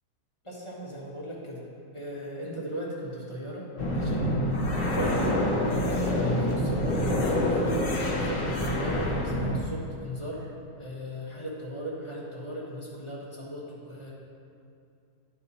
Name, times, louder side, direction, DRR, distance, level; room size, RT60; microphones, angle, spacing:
voice 1, 0.4-1.6 1.9-7.1 7.4-10.5 10.7-14.1, right 1 dB, 20° left, -6 dB, 1.4 m, -37 dB
sound 1, 3.8-9.6, left 1 dB, 40° left, 1.0 m, -26 dB
10.0 x 4.9 x 4.2 m, 2.5 s
omnidirectional pair, 1.7 m